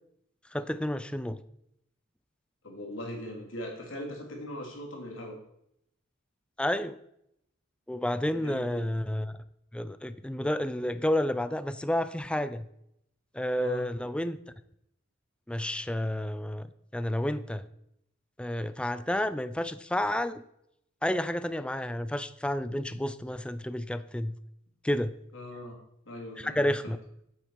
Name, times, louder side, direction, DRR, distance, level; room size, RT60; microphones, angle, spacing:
voice 1, 0.5-1.4 6.6-7.0 7.9-9.4 9.7-12.7 13.3-14.4 15.5-16.7 16.9-17.7 18.4-20.4 21.0-24.4 24.8-25.1 26.4-27.0, left 1 dB, 5° left, 13 dB, 0.4 m, -30 dB
voice 2, 2.6-5.4 8.3-8.9 13.6-13.8 25.3-25.8 26.1-26.7, left 1 dB, 75° left, 0 dB, 2.9 m, -40 dB
8.9 x 7.9 x 4.6 m, 0.76 s
head